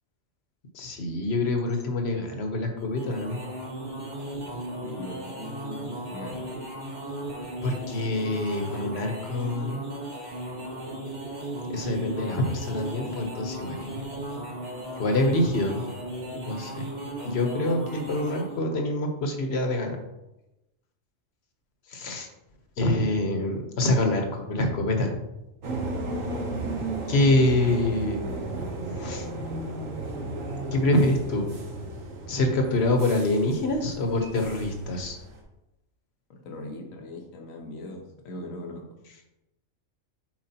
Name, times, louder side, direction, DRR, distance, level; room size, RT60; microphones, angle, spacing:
voice 1, 0.7-3.4 7.6-9.8 11.7-14.0 14.9-15.9 16.4-16.9 17.2-20.0 21.9-22.3 22.8-25.2 27.1-28.3 28.9-29.3 30.7-31.5 32.3-35.2, left 1 dB, 55° left, 4 dB, 1.1 m, -26 dB
sound 1, 2.8-18.6, right 1 dB, 35° right, 1.4 m, -36 dB
voice 2, 4.8-6.5 36.4-38.8, left 1 dB, 80° left, 1 dB, 1.4 m, -40 dB
sound 2, 25.6-35.4, right 2 dB, 75° right, 1.4 m, -34 dB
7.3 x 4.9 x 2.8 m, 0.94 s
omnidirectional pair, 1.4 m